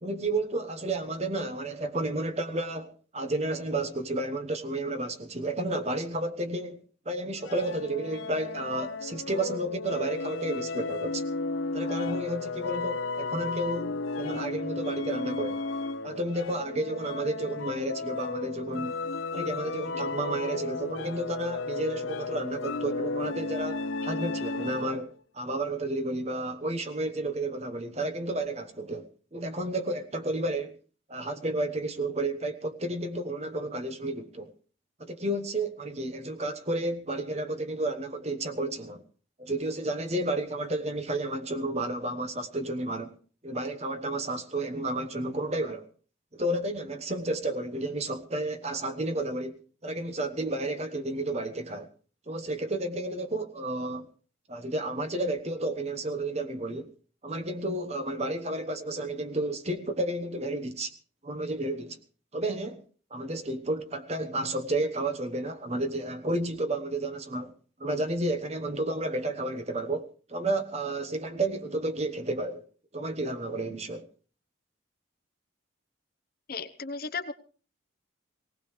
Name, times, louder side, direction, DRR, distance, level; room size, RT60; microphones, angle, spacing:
voice 1, 0.0-11.2 11.7-15.6 16.0-19.0 19.3-30.8 31.1-34.5 35.0-39.0 39.4-43.2 43.4-45.9 46.3-51.9 52.3-54.1 54.5-56.9 57.2-60.9 61.2-62.0 62.3-62.8 63.1-67.5 67.8-72.6 72.9-74.1, right 1 dB, 30° right, 1.2 m, -31 dB
sound 1, 7.4-25.1, left 3 dB, 80° left, 0.7 m, -34 dB
voice 2, 76.5-77.3, left 4 dB, 45° left, 0.9 m, -35 dB
19.0 x 18.0 x 3.3 m
head